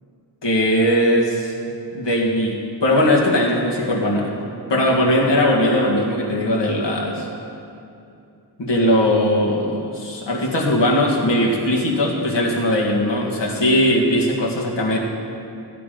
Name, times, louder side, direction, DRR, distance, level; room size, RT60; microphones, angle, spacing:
voice 1, 0.4-1.5 1.9-4.3 4.7-7.3 8.6-15.0, left 1 dB, 80° left, -2 dB, 1.9 m, -19 dB
14.0 x 9.7 x 5.1 m, 2.6 s
wide cardioid pair, 80°, 43 cm